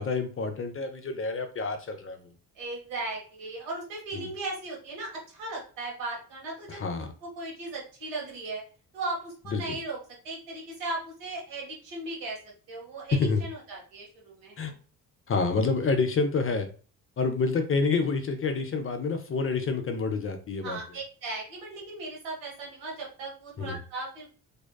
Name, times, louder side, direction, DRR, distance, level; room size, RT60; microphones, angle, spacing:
voice 1, 0.0-2.2 4.1-4.3 6.7-7.1 9.5-9.8 13.1-13.4 14.6-14.7 15.3-16.7 17.2-20.8 23.6-23.8, left 4 dB, 30° left, 6 dB, 0.5 m, -28 dB
voice 2, 2.5-6.8 7.2-8.6 8.9-10.0 10.2-14.6 20.6-24.3, right 2 dB, 80° right, -2 dB, 1.1 m, -37 dB
2.7 x 2.2 x 2.2 m, 0.39 s
hypercardioid pair, 50°, 42 cm